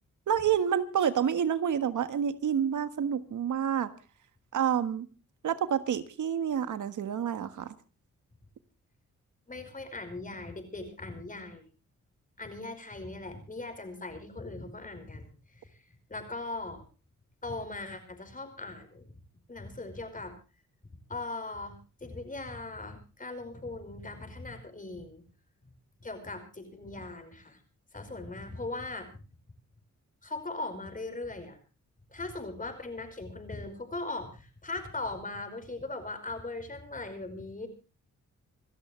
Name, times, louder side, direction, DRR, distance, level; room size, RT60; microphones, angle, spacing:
voice 1, 0.3-3.9 4.5-5.1 5.4-7.7, right 8 dB, 85° right, 11 dB, 1.6 m, -28 dB
voice 2, 9.5-11.6 12.4-15.8 16.1-16.8 17.4-19.0 19.5-20.3 21.1-25.2 26.0-27.6 27.9-29.2 30.2-31.6 32.1-37.7, left 2 dB, 25° left, 7 dB, 5.1 m, -39 dB
27.5 x 13.0 x 3.3 m, 0.34 s
cardioid pair, 95°, 30 cm